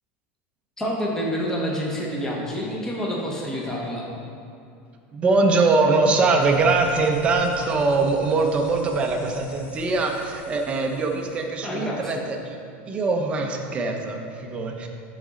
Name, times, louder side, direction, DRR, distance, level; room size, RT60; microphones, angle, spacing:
voice 1, 0.8-4.1 11.6-12.3, equal, 10° left, -3 dB, 1.0 m, -28 dB
voice 2, 5.1-12.6 12.9-14.9, right 3 dB, 15° right, 2 dB, 0.6 m, -22 dB
sound 1, 6.4-11.4, left 3 dB, 70° left, 1.0 m, -45 dB
12.0 x 4.1 x 3.7 m, 2.6 s
supercardioid pair, 170°, 7 cm